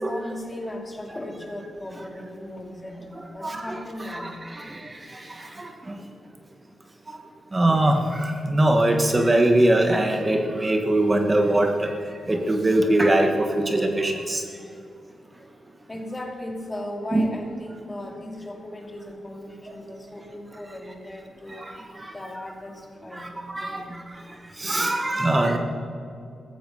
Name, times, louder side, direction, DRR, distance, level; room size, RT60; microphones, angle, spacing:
voice 1, 0.0-4.5 15.9-24.5, left 1 dB, 25° left, 3 dB, 2.5 m, -37 dB
voice 2, 3.1-3.8 4.1-5.9 7.5-11.9 12.3-14.4 17.1-17.3 21.6-22.1 23.1-24.0 24.6-25.6, right 1 dB, 25° right, 5 dB, 1.4 m, -22 dB
14.5 x 13.5 x 5.5 m, 2.4 s
cardioid pair, 75°, 0 cm